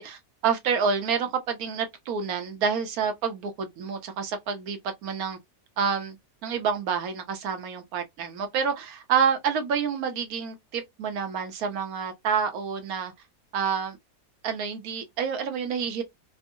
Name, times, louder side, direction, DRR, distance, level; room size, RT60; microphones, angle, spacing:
voice 1, 0.0-5.4 5.8-6.2 6.4-13.1 13.5-14.0 14.4-16.0, right 6 dB, 70° right, 1.1 m, -28 dB
3.5 x 2.0 x 2.4 m
omnidirectional pair, 1.8 m